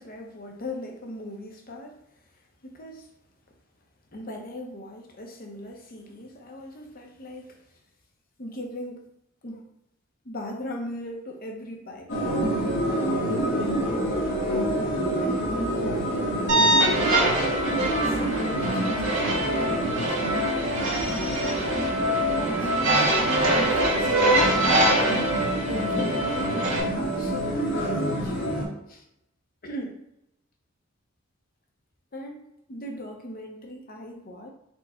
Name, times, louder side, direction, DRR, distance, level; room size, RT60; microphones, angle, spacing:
voice 1, 0.0-2.0 2.6-3.1 4.1-7.6 8.4-9.0 9.4-9.7 10.2-12.5 13.3-13.9 14.5-17.6 18.0-21.6 22.3-25.1 25.7-28.5 28.9-29.0 29.6-30.0 32.1-32.4 32.7-34.5, left 1 dB, 45° left, 2 dB, 0.8 m, -39 dB
sound 1, 12.1-28.7, equal, 65° left, 1.2 m, -27 dB
sound 2, 16.5-26.8, right 2 dB, 70° right, 1.4 m, -25 dB
4.4 x 2.3 x 4.3 m, 0.82 s
head